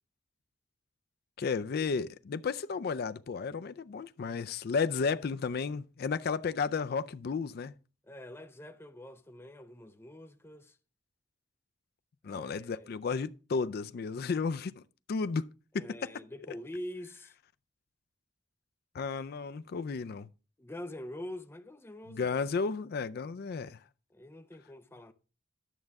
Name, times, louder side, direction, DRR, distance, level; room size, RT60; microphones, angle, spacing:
voice 1, 1.4-7.7 12.2-14.8 15.1-15.5 15.7-15.9 18.9-20.3 22.1-23.8, left 5 dB, 55° left, 0.4 m, -33 dB
voice 2, 8.0-10.8 12.2-13.0 15.7-17.3 20.6-22.4 24.1-25.1, left 1 dB, 15° left, 0.6 m, -45 dB
11.0 x 6.5 x 3.5 m
head